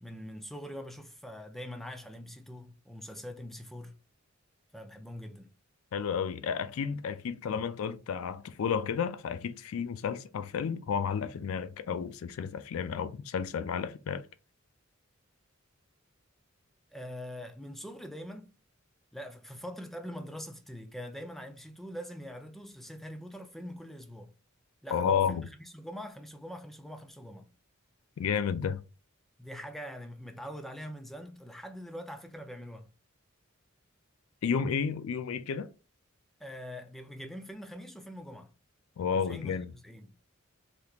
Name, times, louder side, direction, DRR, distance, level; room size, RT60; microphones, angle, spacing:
voice 1, 0.0-4.0 4.7-5.5 16.9-18.5 19.1-24.3 24.8-25.4 25.7-27.5 29.4-32.9 36.4-38.5 39.1-40.1, equal, ahead, 0.4 m, -43 dB
voice 2, 5.9-14.3 24.9-25.5 28.2-28.8 34.4-35.7 39.0-39.7, left 7 dB, 80° left, 0.4 m, -32 dB
3.5 x 2.8 x 2.4 m
head